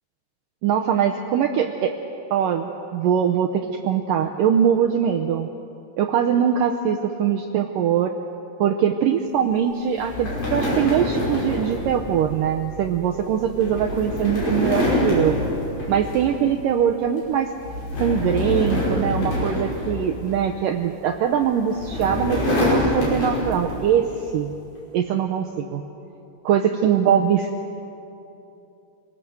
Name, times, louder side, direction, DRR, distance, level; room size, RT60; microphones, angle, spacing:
voice 1, 0.6-2.0 2.3-5.5 6.0-8.1 8.6-15.4 15.9-17.5 18.0-24.5 24.9-25.8 26.5-27.5, right 8 dB, 85° right, 4 dB, 1.9 m, -22 dB
sound 1, 10.0-16.5 16.9-17.2 17.6-20.6 21.4-23.9, left 1 dB, 45° left, 6.6 m, -26 dB
27.0 x 19.0 x 7.9 m, 2.9 s
omnidirectional pair, 4.9 m